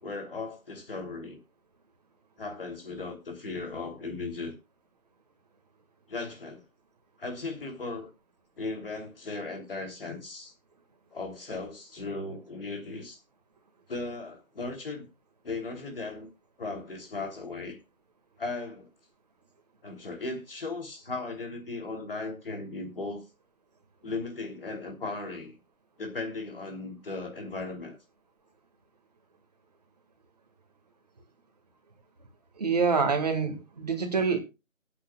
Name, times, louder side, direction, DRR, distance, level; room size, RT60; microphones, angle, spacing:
voice 1, 0.0-1.4 2.4-4.5 6.1-6.6 7.2-8.1 8.6-10.5 11.1-13.2 13.9-15.0 15.4-16.3 16.6-17.8 18.4-18.9 19.8-23.2 24.0-25.6 26.0-28.0, left 3 dB, 45° left, 3.1 m, -37 dB
voice 2, 32.6-34.4, right 5 dB, 30° right, 1.8 m, -26 dB
25.0 x 8.6 x 2.3 m
figure-of-eight pair, 170°, 41 cm